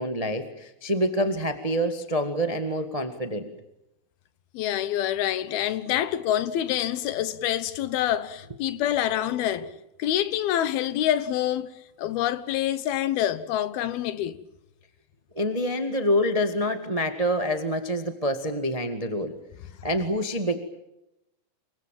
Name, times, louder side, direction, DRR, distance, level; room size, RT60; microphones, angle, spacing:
voice 1, 0.0-3.5 15.3-19.3 19.8-20.6, equal, 50° right, 0.4 m, -26 dB
voice 2, 4.5-9.7 10.0-11.7 12.0-14.4, left 11 dB, 85° left, 3.1 m, -26 dB
27.0 x 24.0 x 7.6 m
omnidirectional pair, 4.3 m